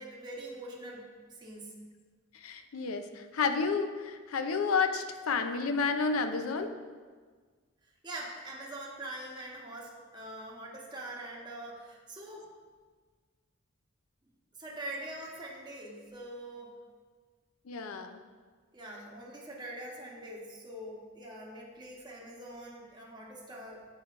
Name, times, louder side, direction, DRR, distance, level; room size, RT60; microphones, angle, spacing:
voice 1, 0.0-1.8 8.0-12.5 14.6-16.8 18.7-23.8, right 1 dB, 20° right, -3 dB, 0.9 m, -43 dB
voice 2, 2.3-6.7 17.7-18.2, left 5 dB, 80° left, 8 dB, 0.5 m, -31 dB
8.3 x 4.6 x 2.5 m, 1.5 s
head